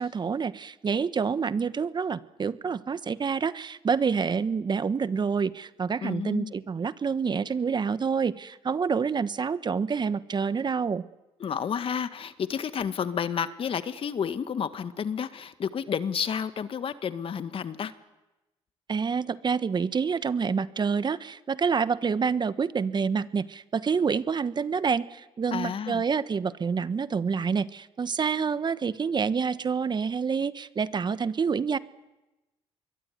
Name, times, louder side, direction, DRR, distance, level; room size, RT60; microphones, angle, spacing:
voice 1, 0.0-11.1 18.9-31.8, right 5 dB, 40° right, 15 dB, 1.2 m, -27 dB
voice 2, 6.0-6.5 11.4-17.9 25.5-26.0, left 7 dB, 55° left, 11 dB, 1.9 m, -31 dB
25.5 x 23.0 x 9.5 m, 1.0 s
supercardioid pair, 65°, 11 cm